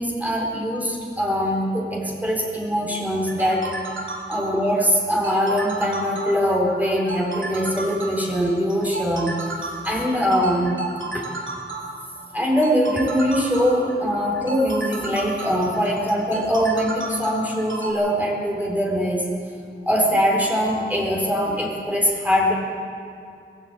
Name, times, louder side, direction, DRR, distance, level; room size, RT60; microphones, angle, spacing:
voice 1, 0.0-3.7 4.3-9.3 9.8-10.8 11.1-11.2 12.3-19.3 19.9-22.5, equal, 10° right, -2 dB, 4.3 m, -22 dB
sound 1, 3.1-17.9, right 3 dB, 75° right, 3.7 m, -32 dB
20.5 x 15.5 x 9.0 m, 2.3 s
wide cardioid pair, 55°, 20 cm